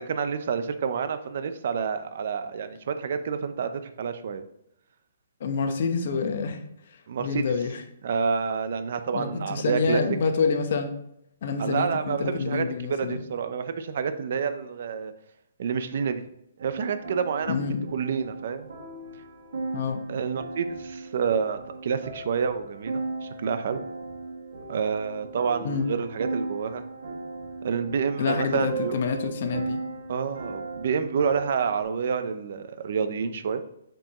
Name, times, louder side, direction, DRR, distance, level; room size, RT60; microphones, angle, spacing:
voice 1, 0.0-4.4 7.1-7.5 8.0-10.0 11.6-15.1 15.6-16.2 16.6-17.6 17.9-18.7 20.1-23.8 24.7-26.8 27.6-29.0 30.1-33.6, right 6 dB, 50° right, 10 dB, 0.6 m, -28 dB
voice 2, 5.4-6.6 6.9-7.8 9.1-10.9 11.4-13.2 17.5-17.8 19.7-20.0 25.6-25.9 28.2-29.8, left 5 dB, 50° left, 5 dB, 0.9 m, -27 dB
sound 1, 16.6-31.8, right 3 dB, 85° right, 1.9 m, -37 dB
7.7 x 4.6 x 3.0 m, 0.80 s
hypercardioid pair, 170°, 0 cm